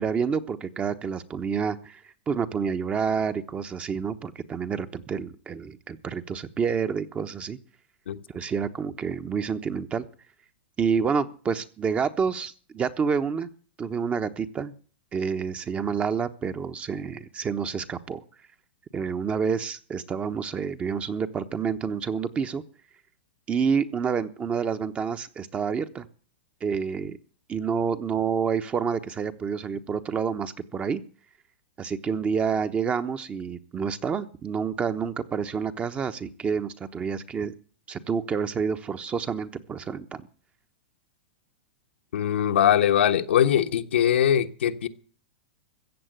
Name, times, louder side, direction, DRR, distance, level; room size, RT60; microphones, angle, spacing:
voice 1, 0.0-2.0 2.3-7.6 8.3-10.1 10.8-13.5 13.8-14.7 15.1-18.2 18.9-22.6 23.5-26.1 26.6-27.2 27.5-31.0 31.8-37.5 37.9-40.3, right 6 dB, 20° right, 1.0 m, -28 dB
voice 2, 42.1-44.9, left 10 dB, 80° left, 1.3 m, -21 dB
15.0 x 7.7 x 9.1 m
hypercardioid pair, 130°, 6 cm